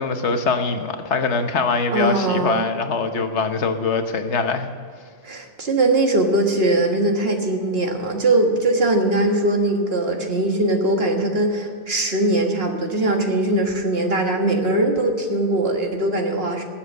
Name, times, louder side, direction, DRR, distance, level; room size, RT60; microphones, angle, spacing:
voice 1, 0.0-4.7, left 4 dB, 70° left, 7 dB, 1.3 m, -23 dB
voice 2, 1.9-2.7 5.2-16.6, right 2 dB, 55° right, 3 dB, 1.9 m, -21 dB
19.0 x 7.4 x 6.4 m, 2.1 s
omnidirectional pair, 1.2 m